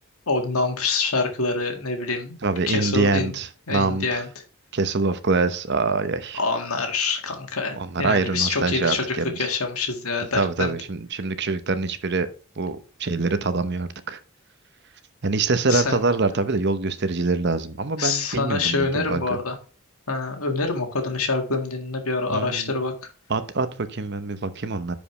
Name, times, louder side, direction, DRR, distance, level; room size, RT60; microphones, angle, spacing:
voice 1, 0.3-2.4 2.7-3.3 3.7-4.3 6.3-10.8 15.7-16.0 18.0-19.6 20.1-22.9, left 3 dB, 75° left, 5 dB, 1.9 m, -26 dB
voice 2, 2.4-4.2 4.7-6.4 7.8-9.5 10.4-12.3 12.6-14.2 15.2-19.2 22.3-22.8 23.3-24.9, right 3 dB, 50° right, 12 dB, 0.8 m, -25 dB
10.5 x 5.1 x 3.3 m, 0.36 s
head